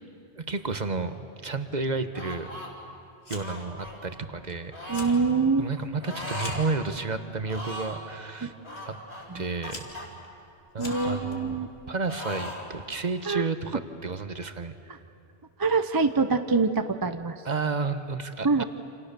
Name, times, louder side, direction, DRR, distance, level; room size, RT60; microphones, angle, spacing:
voice 1, 0.4-2.5 3.3-4.7 5.6-8.6 8.8-9.0 9.3-9.8 10.7-11.6 11.9-14.7 17.4-18.6, right 4 dB, 45° right, 9 dB, 1.2 m, -31 dB
sound 1, 2.1-2.7 3.3-4.0 4.7-5.2 6.0-6.6 6.9-7.0 7.4-8.0 8.6-10.1 10.8-11.8 12.1-12.7, left 1 dB, 25° left, 4.4 m, -38 dB
Fire, 3.2-3.7 4.0-4.5 4.8-5.2 5.6-6.8 7.5-7.9 8.8-8.9 9.4-11.4, left 2 dB, 75° left, 2.7 m, -43 dB
voice 2, 4.9-5.7 8.4-8.5 9.3-9.4 10.8-11.7 13.3-13.5 15.6-17.4 18.4-18.6, right 4 dB, 25° right, 9 dB, 0.6 m, -25 dB
28.5 x 27.0 x 6.8 m, 2.5 s
omnidirectional pair, 1.1 m